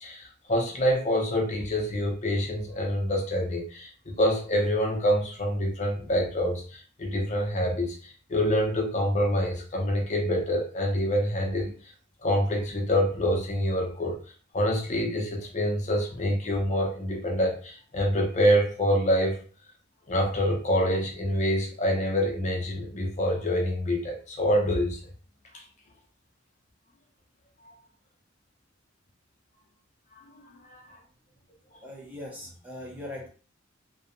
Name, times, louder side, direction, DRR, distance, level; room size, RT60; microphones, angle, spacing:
voice 1, 0.0-11.7 12.2-14.2 14.5-19.4 20.1-25.0 25.5-25.6 30.7-30.8, equal, 35° left, 0 dB, 0.6 m, -26 dB
voice 2, 31.8-33.3, left 1 dB, 10° right, -2 dB, 0.5 m, -40 dB
2.7 x 2.1 x 2.5 m, 0.38 s
head